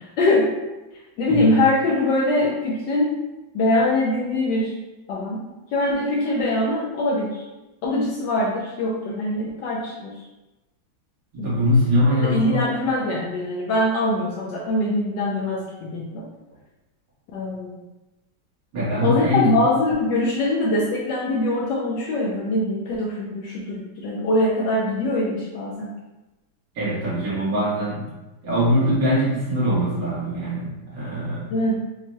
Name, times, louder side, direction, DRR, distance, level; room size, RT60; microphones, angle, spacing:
voice 1, 0.2-0.5 1.2-3.1 3.5-4.7 5.1-5.5 5.7-7.4 7.8-10.1 11.4-11.6 12.2-16.2 17.3-17.8 19.0-25.9 31.5-31.8, left 1 dB, 70° left, -3 dB, 1.1 m, -23 dB
voice 2, 11.3-12.6 18.7-19.5 26.8-28.1 28.4-31.5, equal, 65° right, -10 dB, 2.3 m, -22 dB
5.7 x 2.9 x 2.2 m, 1.1 s
omnidirectional pair, 2.3 m